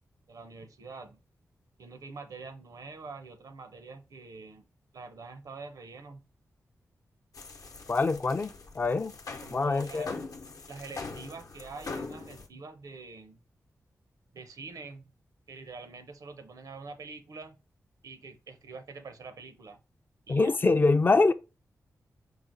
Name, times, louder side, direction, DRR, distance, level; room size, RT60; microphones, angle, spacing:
voice 1, 0.3-1.2 1.8-4.7 4.9-6.2 9.4-10.1 10.7-13.4 14.3-15.1 15.5-17.6 18.0-19.8 20.3-20.5, right 4 dB, 75° right, 0.6 m, -45 dB
sound 1, 7.3-12.5, left 3 dB, 75° left, 0.8 m, -42 dB
voice 2, 7.9-9.1 9.5-10.2 20.3-21.3, left 3 dB, 35° left, 0.3 m, -24 dB
4.9 x 2.0 x 3.8 m
wide cardioid pair, 85°, 6 cm